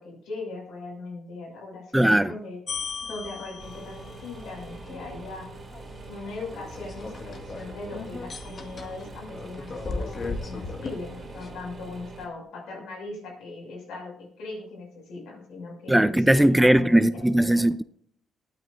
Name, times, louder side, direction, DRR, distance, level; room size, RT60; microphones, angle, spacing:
voice 1, 0.0-2.6 3.1-5.5 6.1-17.6, left 3 dB, 80° left, 6.1 m, -39 dB
voice 2, 1.9-2.3 15.9-17.8, right 1 dB, 5° right, 0.4 m, -19 dB
sound 1, 2.7-11.5, left 3 dB, 40° left, 1.7 m, -38 dB
sound 2, 3.6-12.3, right 3 dB, 40° right, 3.0 m, -44 dB
21.0 x 9.5 x 2.6 m
cardioid pair, 90°, 0 cm